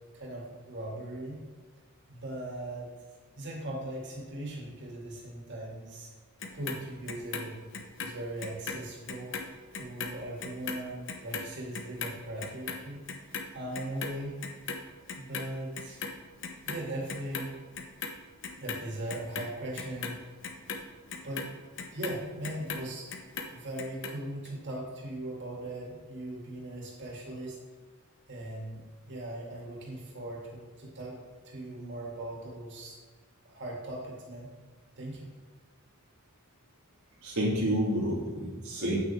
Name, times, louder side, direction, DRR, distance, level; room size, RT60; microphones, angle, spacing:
voice 1, 0.1-1.4 2.1-2.9 3.4-6.1 6.5-7.6 8.0-9.4 9.7-13.0 13.5-14.4 15.2-16.0 16.7-17.5 18.6-20.2 21.2-21.4 21.9-23.1 23.5-27.6 28.3-31.2 31.4-32.9 33.4-34.5 35.0-35.3, right 1 dB, 55° right, -3 dB, 2.6 m, -39 dB
Clock, 6.4-8.8 9.1-15.5 15.7-16.8 17.1-18.1 18.4-22.8 23.1-24.1 24.5-24.6, left 5 dB, 60° left, 1.0 m, -38 dB
voice 2, 37.2-39.0, equal, 80° right, -5 dB, 2.2 m, -29 dB
9.1 x 8.9 x 3.6 m, 1.5 s
head